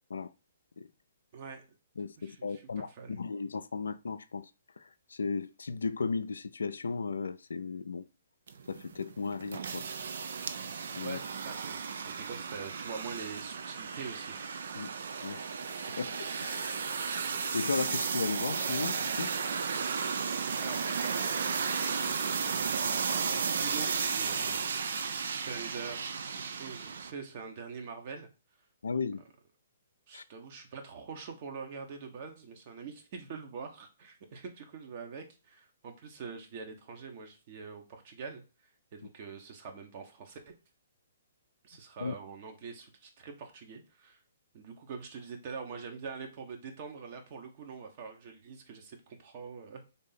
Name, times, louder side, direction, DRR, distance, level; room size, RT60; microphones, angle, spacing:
voice 1, 1.3-1.6 2.2-3.2 11.0-14.4 20.6-21.3 21.6-28.3 30.1-38.4 38.9-40.5 41.6-44.2 44.5-49.8, right 5 dB, 45° right, 0.9 m, -44 dB
voice 2, 2.0-4.5 4.8-8.0 8.7-9.9 11.0-11.2 14.8-14.9 15.2-16.8 17.5-19.3 28.8-29.2 30.1-30.2 42.0-42.1, left 4 dB, 85° left, 0.3 m, -35 dB
sound 1, 8.5-27.1, right 5 dB, 70° right, 0.4 m, -34 dB
3.5 x 2.7 x 4.1 m
hypercardioid pair, 135°, 0 cm